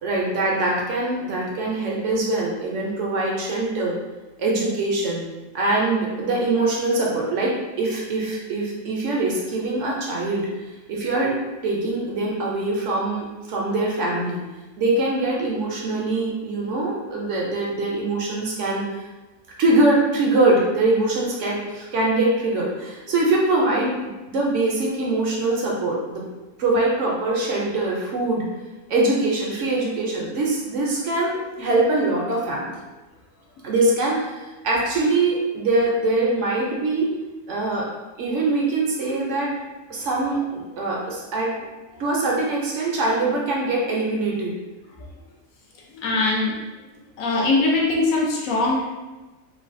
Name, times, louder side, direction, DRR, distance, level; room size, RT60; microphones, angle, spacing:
voice 1, 0.0-3.9 4.4-5.3 5.5-10.5 10.9-11.4 11.6-14.4 14.8-19.0 19.6-24.0 24.3-26.2 26.6-28.5 28.9-32.8 33.6-37.1 37.5-37.9 38.2-39.5 39.9-41.5 42.0-44.5, right 2 dB, 65° right, -3 dB, 0.8 m, -23 dB
voice 2, 40.0-40.4 45.9-46.6 47.2-48.8, left 2 dB, 75° left, -3 dB, 1.0 m, -22 dB
3.2 x 2.2 x 2.5 m, 1.2 s
omnidirectional pair, 1.5 m